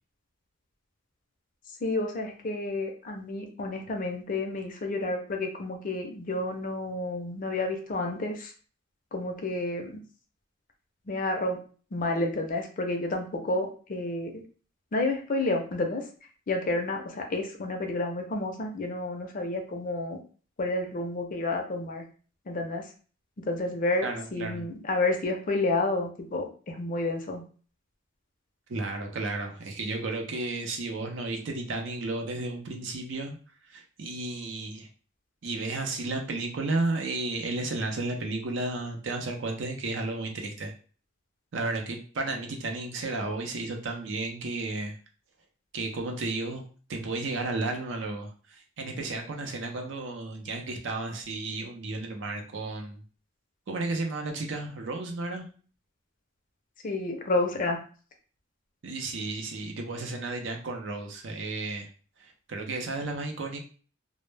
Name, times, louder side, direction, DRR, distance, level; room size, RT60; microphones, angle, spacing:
voice 1, 1.8-8.5 9.1-10.0 11.1-11.6 11.9-14.4 14.9-16.1 16.5-20.2 20.6-22.0 22.5-22.9 23.5-24.1 24.3-27.4 56.8-57.8, left 2 dB, 45° left, 3 dB, 0.5 m, -30 dB
voice 2, 24.0-24.7 28.7-33.4 33.7-34.9 35.4-40.7 41.5-45.0 45.7-53.0 53.7-55.5 58.8-61.9 62.2-63.6, right 2 dB, 70° right, 3 dB, 0.5 m, -33 dB
2.0 x 2.0 x 3.2 m, 0.41 s
head